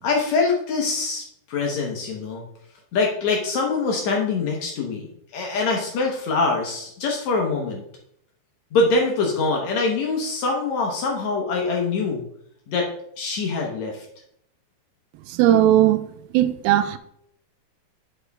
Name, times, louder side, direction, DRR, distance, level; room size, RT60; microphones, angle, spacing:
voice 1, 0.0-2.4 2.9-5.1 5.3-7.8 8.7-12.2 12.7-12.9 13.2-14.0, left 3 dB, 75° left, 1.6 m, -24 dB
voice 2, 15.3-16.1 16.3-17.0, right 12 dB, 80° right, 2.3 m, -17 dB
9.6 x 4.7 x 3.5 m
omnidirectional pair, 4.8 m